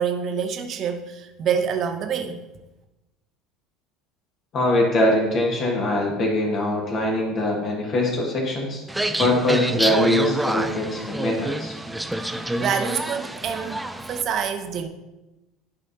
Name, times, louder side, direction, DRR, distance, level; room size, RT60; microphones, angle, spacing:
voice 1, 0.0-2.4 12.6-14.9, right 7 dB, 45° right, 0.8 m, -26 dB
voice 2, 4.5-8.8 9.2-11.8, left 1 dB, 45° left, 1.7 m, -22 dB
sound 1, 8.9-14.2, right 1 dB, 5° right, 0.4 m, -27 dB
11.5 x 5.2 x 2.8 m
figure-of-eight pair, 65°, 0 cm